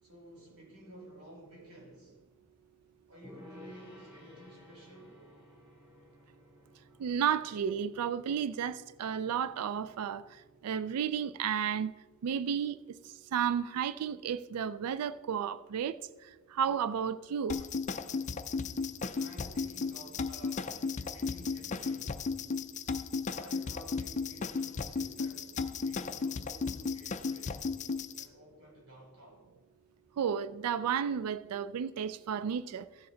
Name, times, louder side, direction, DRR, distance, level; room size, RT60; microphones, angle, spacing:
voice 1, 0.0-2.2 3.1-5.2 19.2-20.8 21.1-22.2 23.3-27.7 28.2-29.4, equal, 70° right, 3.4 m, -53 dB
Gong, 3.2-10.7, left 1 dB, 25° right, 2.8 m, -57 dB
voice 2, 7.0-10.2 10.6-11.9 12.2-12.8 13.3-16.0 16.5-17.6 30.2-32.8, right 8 dB, 90° right, 0.4 m, -32 dB
sound 1, 17.5-28.3, left 4 dB, 35° left, 0.4 m, -35 dB
15.5 x 6.8 x 3.8 m
head